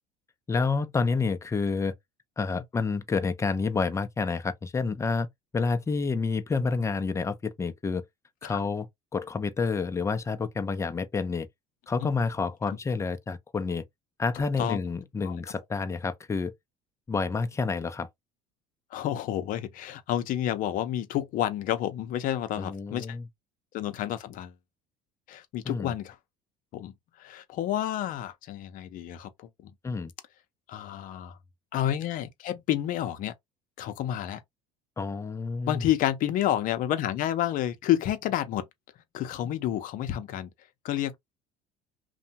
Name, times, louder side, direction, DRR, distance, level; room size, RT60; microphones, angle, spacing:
voice 1, 0.5-1.9 2.4-5.3 5.5-8.0 8.4-8.9 9.1-11.5 11.9-13.8 14.2-16.5 17.1-18.1 22.6-23.2 25.7-25.9 29.8-30.1 35.0-35.8, left 4 dB, 20° left, 0.5 m, -29 dB
voice 2, 18.9-23.2 23.7-24.5 25.3-26.2 26.7-29.7 30.7-31.4 31.7-33.3 33.8-34.4 35.7-38.7 39.1-40.5 40.8-41.2, left 12 dB, 60° left, 0.6 m, -30 dB
2.7 x 2.2 x 2.8 m
supercardioid pair, 100°, 16 cm